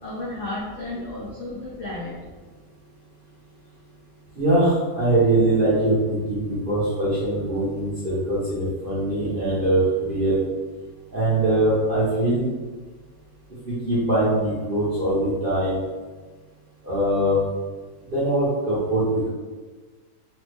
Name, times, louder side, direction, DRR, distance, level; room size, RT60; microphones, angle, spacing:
voice 1, 0.0-2.1, left 2 dB, 90° left, -6 dB, 0.5 m, -33 dB
voice 2, 4.4-10.4 11.1-12.5 13.7-15.8 16.8-17.4 18.1-19.3, right 1 dB, 50° right, -10 dB, 0.6 m, -22 dB
3.1 x 2.0 x 3.2 m, 1.3 s
omnidirectional pair, 1.8 m